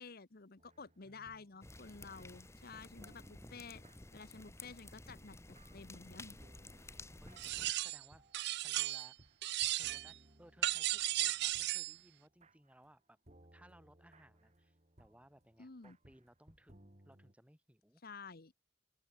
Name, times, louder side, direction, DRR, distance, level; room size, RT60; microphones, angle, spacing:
voice 1, 0.0-3.8 4.1-5.4 5.7-6.4 15.6-16.0 18.0-18.5, left 4 dB, 55° left, 1.2 m, -52 dB
sound 1, 0.6-13.0 13.2-17.3, right 1 dB, 40° right, 4.9 m, -65 dB
voice 2, 1.1-1.4 6.8-8.2 8.6-9.2 9.7-13.2 13.5-18.0, right 1 dB, 5° right, 7.8 m, -63 dB
sound 2, 1.6-7.7, left 2 dB, 15° left, 1.6 m, -53 dB
sound 3, 7.4-8.0 8.3-9.1 9.4-10.1 10.6-11.9, right 16 dB, 60° right, 0.4 m, -35 dB
open air
head